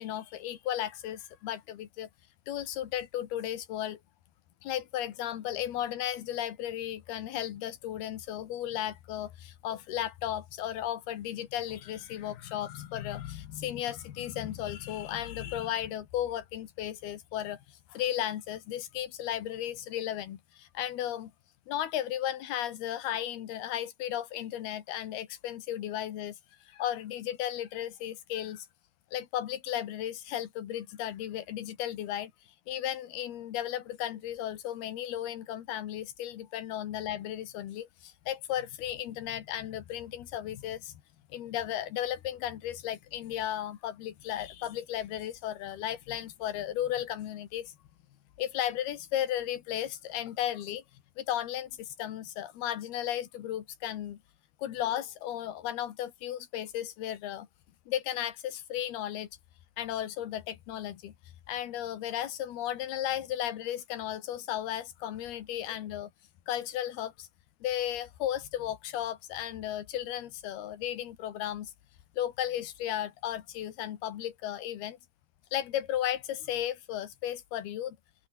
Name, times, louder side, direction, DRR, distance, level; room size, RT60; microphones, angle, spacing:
voice 1, 0.0-2.1 2.5-4.0 4.6-21.3 21.7-26.4 26.7-28.7 29.1-32.3 32.7-41.0 41.3-47.8 48.4-50.8 51.2-54.2 54.6-57.5 57.9-59.3 59.8-61.1 61.5-66.1 66.5-67.3 67.6-71.7 72.2-75.0 75.5-78.0, left 11 dB, 90° left, 3.8 m, -35 dB
open air
omnidirectional pair, 4.4 m